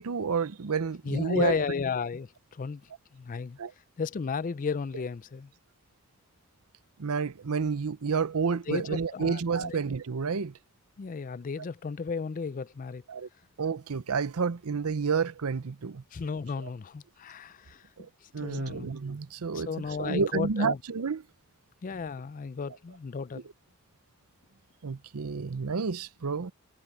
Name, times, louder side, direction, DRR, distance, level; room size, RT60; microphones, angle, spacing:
voice 1, 0.0-1.7 3.6-3.7 7.0-10.5 13.1-13.3 13.6-16.0 18.0-18.1 18.3-19.7 20.0-21.2 24.8-26.5, right 5 dB, 80° right, 0.7 m, -30 dB
voice 2, 1.0-3.6 4.0-5.5 8.7-9.8 11.0-13.0 16.1-17.8 18.2-18.9 19.5-20.8 21.8-23.4, left 5 dB, 35° left, 0.4 m, -34 dB
head